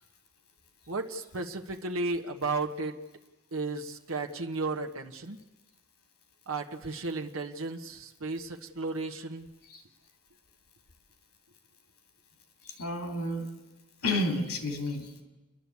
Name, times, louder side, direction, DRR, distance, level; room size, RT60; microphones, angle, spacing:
voice 1, 0.9-3.0 3.5-5.4 6.5-9.5, right 3 dB, 70° right, 4 dB, 1.3 m, -34 dB
voice 2, 12.6-13.5 14.0-15.2, left 1 dB, 85° left, 4 dB, 3.0 m, -31 dB
30.0 x 11.0 x 8.3 m, 1.1 s
head